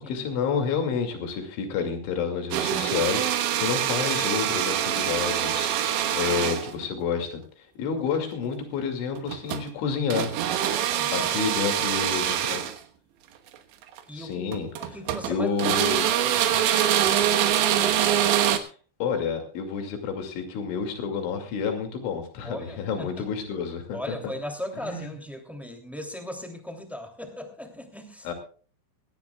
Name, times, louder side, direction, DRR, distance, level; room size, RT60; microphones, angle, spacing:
voice 1, 0.0-10.3 11.1-12.7 14.1-14.7 15.3-16.1 18.5-18.7 19.0-24.3 24.8-25.1 28.2-28.3, left 6 dB, 85° left, 5 dB, 5.0 m, -29 dB
sound 1, 2.5-6.9 9.2-9.7 10.1-12.8 13.8-14.0 14.5-15.3 15.6-18.6, right 10 dB, 80° right, 3.5 m, -24 dB
voice 2, 10.7-11.3 14.1-14.5 14.8-15.5 16.0-16.8 22.4-23.1 23.9-28.3, left 1 dB, ahead, 4 dB, 1.4 m, -38 dB
20.5 x 17.0 x 2.4 m, 0.40 s
omnidirectional pair, 5.3 m